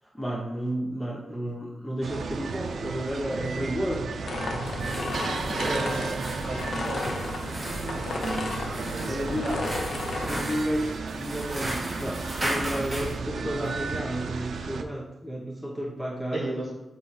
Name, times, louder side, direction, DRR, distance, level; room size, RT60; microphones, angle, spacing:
voice 1, 0.1-4.1 5.6-6.1 9.1-9.6 10.3-16.5, equal, ahead, -2 dB, 0.6 m, -32 dB
sound 1, 2.0-14.8, right 5 dB, 85° right, 0.4 m, -34 dB
sound 2, 4.3-10.4, left 3 dB, 70° left, 0.8 m, -33 dB
sound 3, 4.6-13.2, right 1 dB, 15° right, 1.1 m, -37 dB
voice 2, 5.6-7.1 8.8-9.6 16.3-16.7, right 1 dB, 40° right, -3 dB, 1.9 m, -35 dB
7.5 x 3.1 x 4.0 m, 1.0 s
wide cardioid pair, 180°, 0 cm